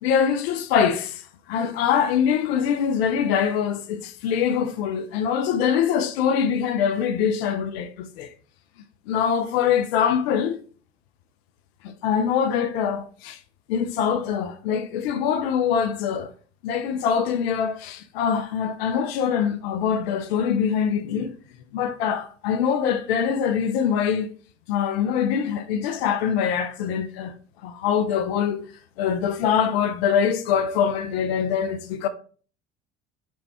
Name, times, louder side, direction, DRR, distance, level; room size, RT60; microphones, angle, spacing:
voice 1, 0.0-8.3 9.1-10.6 11.8-13.4 13.7-16.3 16.6-21.4 21.7-24.3 24.7-27.3 27.6-28.6 29.0-32.1, left 7 dB, 65° left, 0.5 m, -23 dB
4.3 x 2.3 x 2.8 m
figure-of-eight pair, 65°, 33 cm